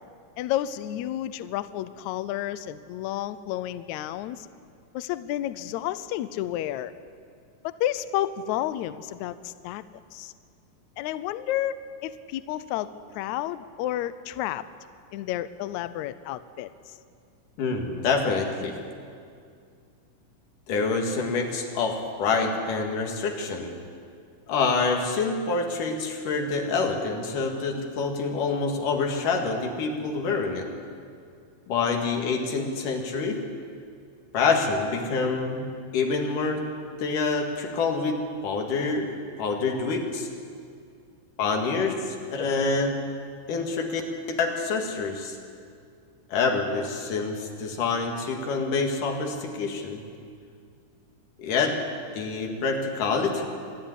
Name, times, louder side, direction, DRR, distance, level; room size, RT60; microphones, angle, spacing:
voice 1, 0.4-4.5 4.9-6.9 7.6-9.8 10.1-10.3 11.0-11.8 12.0-14.6 15.1-17.0, left 13 dB, 85° left, 14 dB, 1.6 m, -31 dB
voice 2, 17.6-18.8 20.7-23.7 24.5-30.7 31.7-33.4 34.3-35.7 35.9-36.7 37.0-40.3 41.4-43.0 43.5-44.0 44.3-45.4 46.3-50.0 51.4-51.8 52.1-53.5, left 4 dB, 70° left, 3 dB, 3.4 m, -26 dB
26.0 x 10.5 x 9.9 m, 2.3 s
omnidirectional pair, 4.0 m